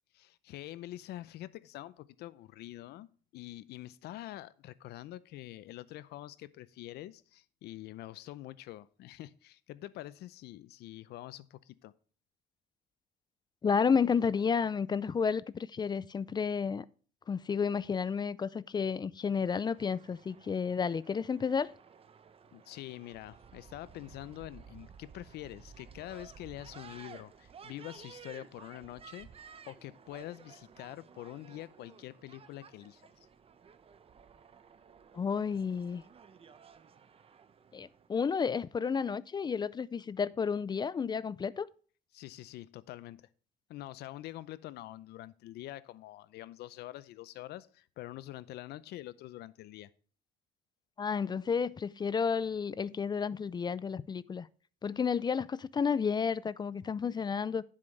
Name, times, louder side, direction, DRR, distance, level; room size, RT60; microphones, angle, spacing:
voice 1, 0.1-11.9 22.5-29.3 29.7-33.3 42.1-43.3 43.7-49.9, left 15 dB, 75° left, 0.6 m, -46 dB
voice 2, 13.6-16.9 17.3-21.7 35.1-36.0 37.7-41.7 51.0-54.5 54.8-57.6, left 6 dB, 25° left, 0.4 m, -31 dB
sound 1, 19.4-38.1, right 6 dB, 35° right, 0.8 m, -55 dB
10.0 x 7.6 x 3.2 m
cardioid pair, 110°, 17 cm